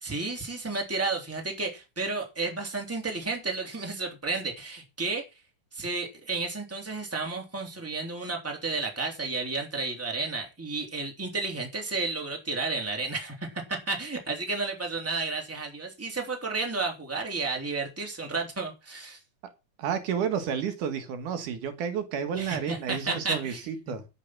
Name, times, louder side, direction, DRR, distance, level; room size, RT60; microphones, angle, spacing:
voice 1, 0.0-5.2 5.7-19.2 22.3-23.9, right 3 dB, 5° right, 2.8 m, -32 dB
voice 2, 19.8-24.0, right 7 dB, 70° right, 2.9 m, -31 dB
10.0 x 8.6 x 5.9 m
omnidirectional pair, 3.8 m